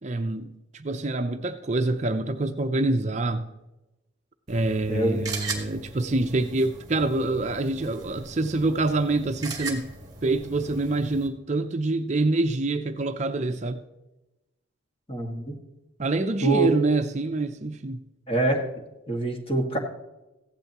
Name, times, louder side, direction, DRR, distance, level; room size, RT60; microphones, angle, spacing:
voice 1, 0.0-3.4 4.5-9.9 10.2-13.8 16.0-18.0, right 2 dB, 35° right, 0.5 m, -26 dB
sound 1, 4.5-11.3, right 4 dB, 20° right, 1.9 m, -39 dB
voice 2, 4.9-5.2 15.1-15.5 16.4-16.7 18.3-18.6 19.1-19.8, right 2 dB, 30° left, 1.8 m, -24 dB
15.5 x 11.5 x 3.0 m
head